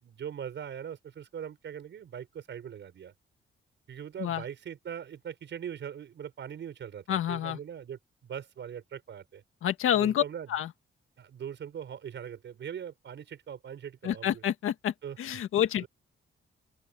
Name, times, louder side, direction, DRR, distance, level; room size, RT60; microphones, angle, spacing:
voice 1, 0.0-3.1 3.9-9.4 9.9-10.5 11.2-14.4 15.0-15.2 15.8-15.9, right 8 dB, 60° right, 5.9 m, -41 dB
voice 2, 7.1-7.6 9.6-10.2 10.5-10.7 14.0-15.8, left 10 dB, 90° left, 1.8 m, -28 dB
open air
cardioid pair, 130°, 21 cm